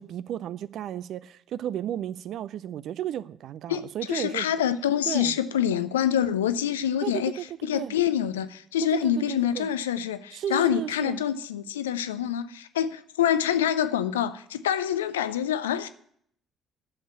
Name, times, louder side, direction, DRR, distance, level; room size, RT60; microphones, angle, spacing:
voice 1, 0.0-4.5 5.1-5.4 7.0-8.0 8.9-9.7 10.3-11.3, right 10 dB, 55° right, 0.5 m, -33 dB
voice 2, 3.7-15.9, left 10 dB, 75° left, 0.5 m, -26 dB
11.5 x 7.3 x 8.4 m
figure-of-eight pair, 45°, 0 cm